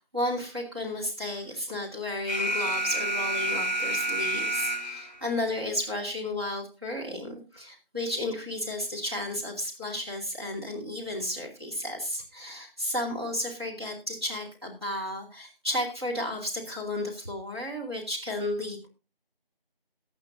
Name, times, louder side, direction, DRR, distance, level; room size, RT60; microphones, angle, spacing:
voice 1, 0.0-18.9, left 1 dB, 25° right, -4 dB, 2.6 m, -33 dB
Alarm, 2.3-5.3, right 1 dB, 45° left, 0.6 m, -29 dB
20.0 x 8.7 x 2.7 m, 0.30 s
figure-of-eight pair, 175°, 29 cm